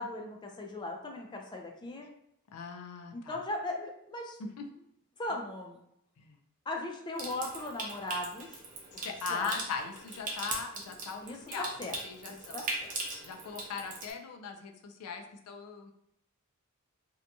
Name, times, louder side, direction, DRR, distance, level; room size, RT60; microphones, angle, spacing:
voice 1, 0.0-2.1 3.1-4.4 5.2-5.8 6.7-8.6 9.3-9.6 11.2-12.0 12.3-12.9, left 1 dB, 20° left, 1 dB, 0.3 m, -38 dB
voice 2, 2.5-3.4 4.4-4.7 6.2-6.4 8.9-11.2 11.5-11.7 12.0-12.6 13.2-15.9, left 5 dB, 90° left, 4 dB, 0.4 m, -39 dB
Water tap faucet / Sink (filling or washing) / Trickle dribble, 7.2-14.1, right 3 dB, 40° right, 0.5 m, -40 dB
2.8 x 2.2 x 2.6 m, 0.77 s
head